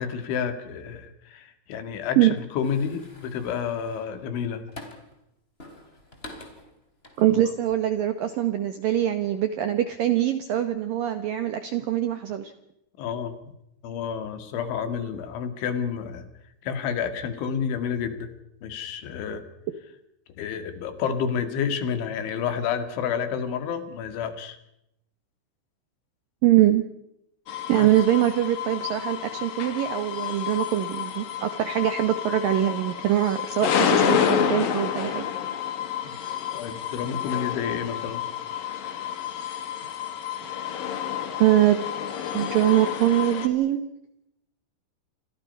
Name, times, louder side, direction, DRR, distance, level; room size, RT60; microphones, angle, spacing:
voice 1, 0.0-4.6 13.0-13.4 13.8-16.3 16.6-18.3 18.6-19.4 20.4-24.6 27.8-27.9 36.0-36.1 36.5-38.2, left 7 dB, 75° left, 9 dB, 4.4 m, -30 dB
sound 1, 2.6-5.2 5.6-7.7 8.1-8.4, left 1 dB, 15° left, 2.8 m, -46 dB
voice 2, 7.2-12.5 26.4-26.8 27.7-35.3 41.4-41.8 42.3-43.8, right 12 dB, 75° right, 9 dB, 2.1 m, -23 dB
sound 2, 27.5-43.5, left 8 dB, 55° left, 3.2 m, -29 dB
29.0 x 24.5 x 5.5 m, 0.81 s
omnidirectional pair, 5.5 m